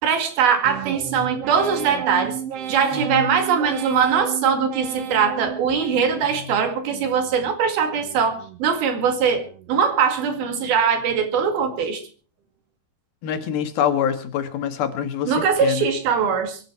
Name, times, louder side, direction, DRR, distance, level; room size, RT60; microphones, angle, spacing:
voice 1, 0.0-2.4 2.7-12.0 15.3-16.6, right 6 dB, 90° right, 7 dB, 4.2 m, -21 dB
sound 1, 0.6-6.5 6.9-7.5 8.0-8.6 9.1-9.7 10.2-10.8 11.3-11.8, right 10 dB, 65° right, 1.6 m, -34 dB
voice 2, 2.9-3.3 13.2-15.3 15.6-15.9, left 9 dB, 85° left, 8 dB, 3.5 m, -25 dB
24.0 x 10.5 x 4.5 m, 0.37 s
omnidirectional pair, 4.2 m